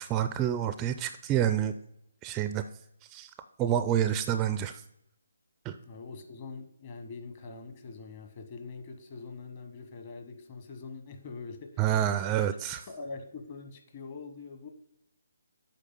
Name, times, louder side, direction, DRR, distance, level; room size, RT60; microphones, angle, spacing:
voice 1, 0.0-1.7 2.2-2.6 3.1-3.3 3.6-4.8 5.6-5.8 11.8-12.9, right 10 dB, 20° right, 10 dB, 0.4 m, -28 dB
voice 2, 5.8-11.8 12.9-14.7, left 4 dB, 35° left, 6 dB, 1.1 m, -43 dB
8.3 x 5.1 x 5.4 m, 0.77 s
figure-of-eight pair, 145°, 0 cm